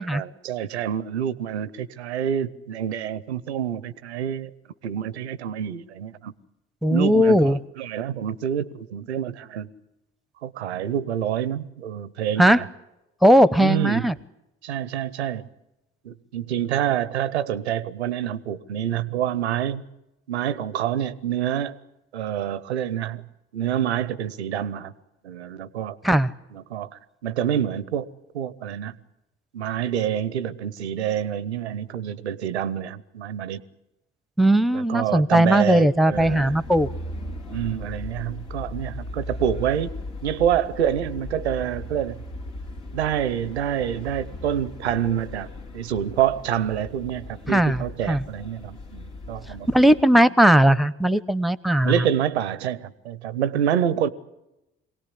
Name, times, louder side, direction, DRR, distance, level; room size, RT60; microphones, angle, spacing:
voice 1, 0.0-4.5 4.8-6.3 6.9-9.7 10.4-12.7 13.6-14.1 14.6-15.5 16.0-19.8 20.3-21.8 22.1-23.2 23.5-24.9 25.2-26.0 26.5-26.9 27.2-28.1 28.3-28.9 29.5-33.6 34.7-36.6 37.5-39.9 40.2-42.2 42.9-45.5 45.7-49.9 51.8-54.1, right 10 dB, 90° right, 17 dB, 0.8 m, -27 dB
voice 2, 6.8-7.6 12.4-12.6 13.2-14.1 26.0-26.3 34.4-36.9 47.5-48.2 49.7-51.9, equal, ahead, 18 dB, 0.9 m, -18 dB
sound 1, 36.1-50.0, left 2 dB, 70° left, 2.7 m, -37 dB
23.5 x 18.0 x 10.0 m, 0.94 s
hypercardioid pair, 50°, 32 cm